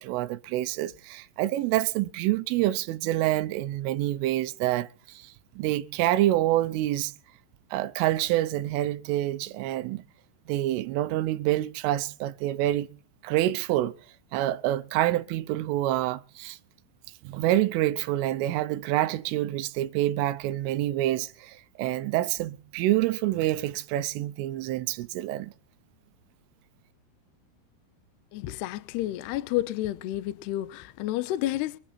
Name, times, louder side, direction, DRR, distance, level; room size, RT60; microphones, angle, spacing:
voice 1, 0.0-7.1 7.7-10.0 10.5-12.9 13.2-14.0 14.3-16.6 17.2-25.5, right 15 dB, 80° right, 3.3 m, -27 dB
voice 2, 28.3-31.8, left 15 dB, 80° left, 2.4 m, -30 dB
25.0 x 10.5 x 4.3 m
omnidirectional pair, 5.9 m